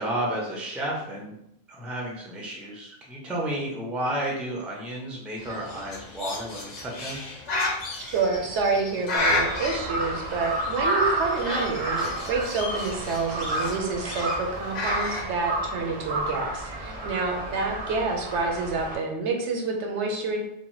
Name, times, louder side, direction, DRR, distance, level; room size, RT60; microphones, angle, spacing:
voice 1, 0.0-1.3 1.7-7.2 20.2-20.4, right 1 dB, ahead, -3 dB, 0.4 m, -32 dB
Bird, 5.4-15.3, left 2 dB, 50° left, 0.6 m, -33 dB
voice 2, 8.1-20.4, right 4 dB, 85° right, 2 dB, 0.9 m, -28 dB
Crow, 9.2-18.9, right 2 dB, 50° right, 0.6 m, -31 dB
2.8 x 2.1 x 3.1 m, 0.80 s
omnidirectional pair, 1.1 m